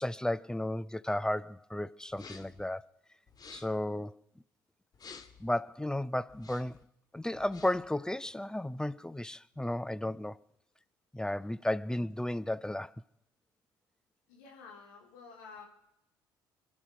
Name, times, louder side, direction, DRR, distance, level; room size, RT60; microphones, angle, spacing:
voice 1, 0.0-2.9 3.5-4.2 5.4-6.8 7.1-10.4 11.1-12.9, left 1 dB, 5° left, 0.6 m, -34 dB
sound 1, 2.1-2.6 3.3-3.9 4.9-5.5 6.3-6.8 7.3-7.9, left 5 dB, 40° left, 1.8 m, -52 dB
voice 2, 14.3-15.6, left 5 dB, 85° left, 3.9 m, -51 dB
24.5 x 11.0 x 5.2 m
hypercardioid pair, 60°, 10 cm